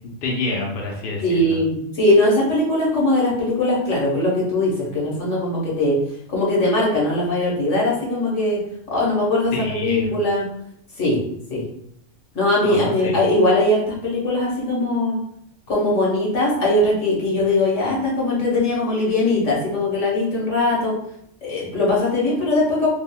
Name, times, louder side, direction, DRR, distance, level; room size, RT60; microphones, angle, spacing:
voice 1, 0.2-1.5 9.5-10.1 12.6-13.1, left 3 dB, 55° left, -1 dB, 0.8 m, -27 dB
voice 2, 1.2-6.0 6.3-8.6 8.9-10.4 11.0-11.2 11.5-11.6 12.3-15.1 15.7-20.9 21.4-22.9, left 2 dB, 80° left, -5 dB, 1.4 m, -20 dB
3.6 x 2.4 x 2.2 m, 0.72 s
omnidirectional pair, 1.2 m